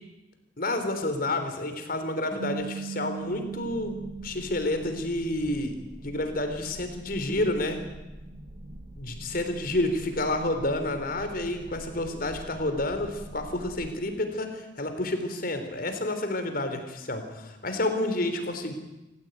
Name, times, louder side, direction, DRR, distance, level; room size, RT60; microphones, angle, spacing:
voice 1, 0.6-7.8 8.9-18.7, left 1 dB, 50° left, 7 dB, 3.6 m, -30 dB
sound 1, 2.3-5.5, right 7 dB, 20° left, 3.4 m, -39 dB
sound 2, 3.2-13.9, right 1 dB, 40° right, 1.9 m, -44 dB
27.0 x 15.0 x 9.2 m, 1.0 s
head